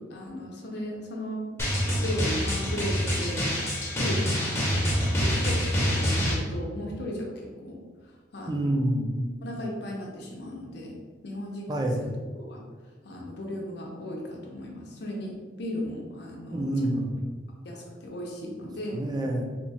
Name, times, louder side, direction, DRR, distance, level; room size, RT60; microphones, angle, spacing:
voice 1, 0.0-1.4 2.0-3.5 4.0-7.8 8.1-8.8 9.4-11.0 11.2-12.1 12.3-12.6 13.0-16.7 17.6-19.0, left 1 dB, 65° left, -1 dB, 0.7 m, -36 dB
Drum, 1.6-6.3, equal, 15° left, 0.8 m, -26 dB
voice 2, 8.5-9.3 11.7-12.0 16.5-17.1 18.9-19.4, right 1 dB, 25° right, 1 dB, 0.4 m, -27 dB
2.9 x 2.4 x 4.0 m, 1.5 s
head